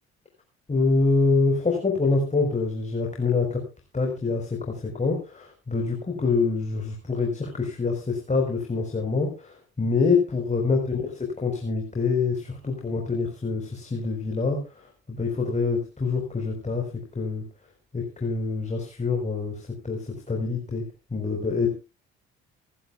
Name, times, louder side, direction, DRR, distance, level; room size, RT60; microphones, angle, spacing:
voice 1, 0.7-3.6 3.9-11.0 11.4-16.9 17.1-17.4 17.9-21.7, left 4 dB, 20° left, 1 dB, 4.3 m, -26 dB
26.5 x 11.5 x 2.3 m, 0.30 s
figure-of-eight pair, 50°, 33 cm